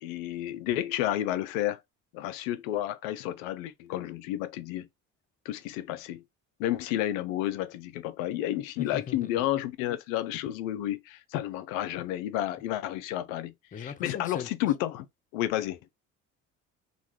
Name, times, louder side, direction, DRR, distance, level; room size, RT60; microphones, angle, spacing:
voice 1, 0.0-1.8 2.1-4.9 5.5-6.2 6.6-15.1 15.3-15.8, left 13 dB, 85° left, 0.5 m, -31 dB
voice 2, 8.8-9.4 13.7-14.5, left 7 dB, 20° left, 0.4 m, -39 dB
2.5 x 2.2 x 3.2 m
hypercardioid pair, 65°, 39 cm